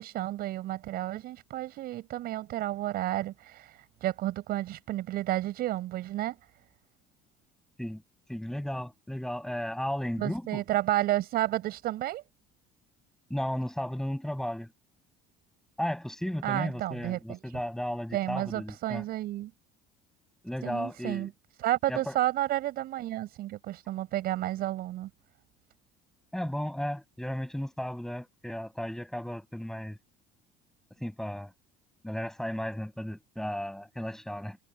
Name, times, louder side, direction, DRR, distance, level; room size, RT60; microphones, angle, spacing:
voice 1, 0.0-6.4 10.2-12.2 16.4-17.4 18.1-19.5 20.6-21.3 21.6-25.1, right 15 dB, 65° right, 7.9 m, -31 dB
voice 2, 8.3-10.6 13.3-14.7 15.8-19.0 20.4-21.3 21.9-22.2 26.3-30.0 31.0-31.5 32.0-34.6, equal, 5° left, 6.1 m, -34 dB
cardioid pair, 105°, 17 cm